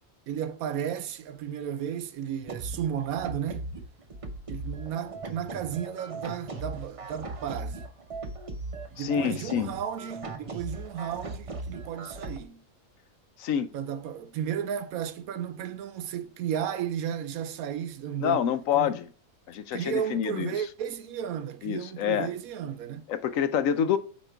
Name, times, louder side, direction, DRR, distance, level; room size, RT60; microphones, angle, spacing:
voice 1, 0.3-3.7 4.5-7.8 8.9-12.6 13.7-18.4 18.7-18.9 19.7-23.1, right 9 dB, 80° right, 1.1 m, -34 dB
sound 1, 2.4-12.4, right 3 dB, 30° right, 0.6 m, -39 dB
voice 2, 9.0-9.7 13.4-13.7 18.2-19.1 19.5-20.7 21.6-22.3 23.1-24.0, left 8 dB, 75° left, 0.9 m, -27 dB
8.5 x 2.9 x 4.4 m
omnidirectional pair, 1.5 m